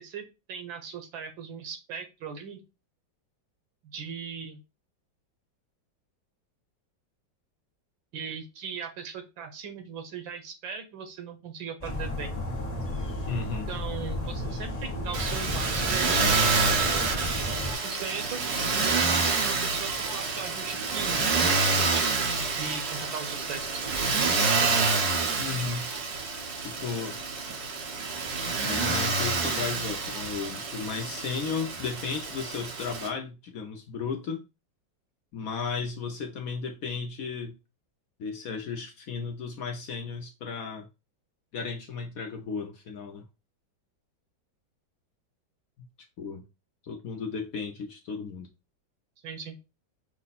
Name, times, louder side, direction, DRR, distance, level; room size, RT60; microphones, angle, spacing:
voice 1, 0.0-2.6 3.8-4.6 8.1-12.3 13.7-18.4 18.7-22.1 22.6-23.9 49.2-49.6, right 6 dB, 85° right, 1.7 m, -39 dB
sound 1, 11.8-17.7, left 1 dB, 30° left, 0.7 m, -33 dB
voice 2, 13.3-13.7 25.4-25.9 26.6-27.2 28.6-34.4 35.3-37.6 38.2-40.9 41.5-43.3 45.8-45.9 46.2-46.4 46.8-48.5, left 5 dB, 60° left, 1.0 m, -34 dB
Motor vehicle (road), 15.1-33.1, right 4 dB, 60° right, 1.4 m, -28 dB
5.8 x 2.2 x 4.1 m
omnidirectional pair, 2.0 m